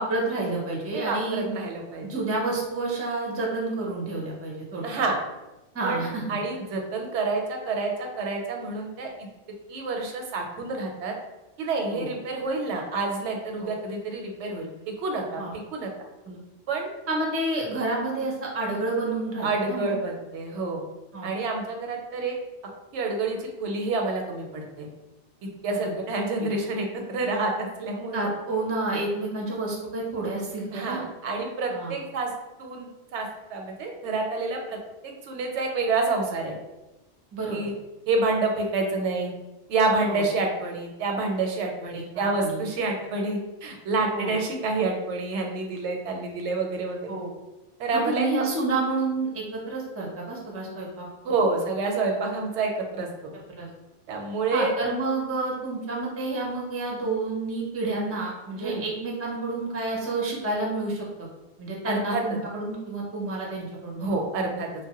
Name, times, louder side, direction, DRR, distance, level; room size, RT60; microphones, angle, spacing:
voice 1, 0.0-1.5 2.0-4.9 5.7-6.4 11.9-12.1 13.6-13.7 15.4-15.5 16.3-16.4 17.1-19.9 21.1-21.3 25.7-25.9 28.1-31.0 31.7-31.9 37.3-37.6 40.1-40.2 41.9-42.6 44.1-44.3 47.1-47.3 47.9-51.1 53.6-53.7 54.5-61.1 61.6-64.1, right 2 dB, 20° right, -2 dB, 0.4 m, -29 dB
voice 2, 0.9-2.1 4.8-5.2 5.8-9.3 9.7-11.1 11.6-14.7 15.0-15.9 16.7-16.9 19.4-20.8 21.2-22.4 22.9-24.9 25.6-28.3 30.7-32.3 32.6-34.8 35.0-36.6 37.5-37.7 38.1-39.3 39.7-47.1 47.8-48.5 51.2-53.1 54.1-54.7 58.6-58.8 61.8-62.2 64.0-64.9, right 3 dB, 90° right, 2 dB, 0.9 m, -28 dB
2.9 x 2.1 x 2.8 m, 1.0 s
omnidirectional pair, 1.1 m